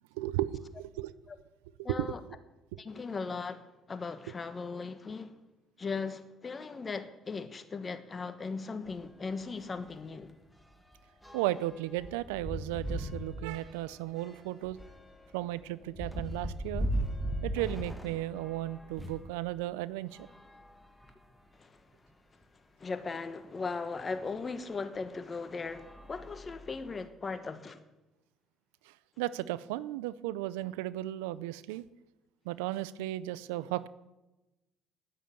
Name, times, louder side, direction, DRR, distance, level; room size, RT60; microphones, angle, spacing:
voice 1, 0.2-1.1 1.8-2.2 2.7-2.8 11.3-14.8 15.3-16.9 17.4-20.2 29.2-31.8 32.5-33.9, right 15 dB, 85° right, 0.4 m, -35 dB
voice 2, 1.8-2.2 2.8-3.6 3.9-5.3 5.8-10.3 21.6-21.8 22.8-27.8, left 4 dB, 35° left, 1.4 m, -38 dB
sound 1, 8.9-9.0 9.4-9.5 9.9-19.3 20.1-21.4 22.1-22.2 22.4-22.5 24.2-24.4 25.0-25.2 25.6-26.9, equal, 5° left, 1.9 m, -39 dB
10.0 x 9.6 x 8.5 m
supercardioid pair, 65°, 0 cm